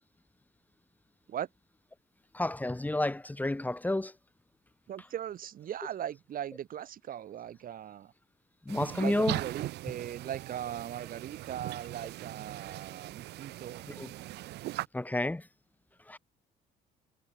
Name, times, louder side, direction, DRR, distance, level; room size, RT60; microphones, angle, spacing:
voice 1, 2.3-4.2 8.6-9.4 13.9-14.1 14.9-15.5 16.0-16.2, left 2 dB, 10° left, 4.3 m, -31 dB
voice 2, 4.9-8.1 9.0-13.9, right 10 dB, 55° right, 7.7 m, -39 dB
sound 1, 8.7-14.9, right 17 dB, 80° right, 6.1 m, -40 dB
cardioid pair, 110°, 17 cm